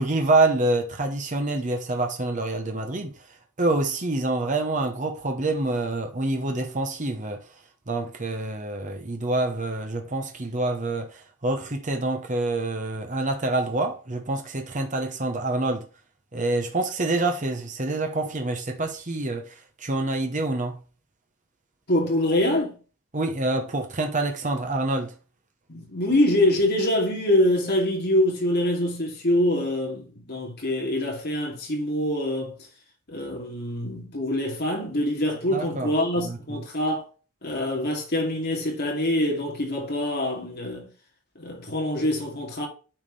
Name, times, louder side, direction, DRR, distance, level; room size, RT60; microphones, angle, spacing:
voice 1, 0.0-3.1 3.6-7.4 7.9-15.8 16.3-20.8 23.1-25.1 35.5-36.6, right 2 dB, 35° right, 0.9 m, -26 dB
voice 2, 21.9-22.7 25.7-32.5 33.1-37.1 37.4-40.9 41.4-42.7, left 1 dB, 45° left, 2.7 m, -25 dB
8.8 x 4.8 x 3.3 m
head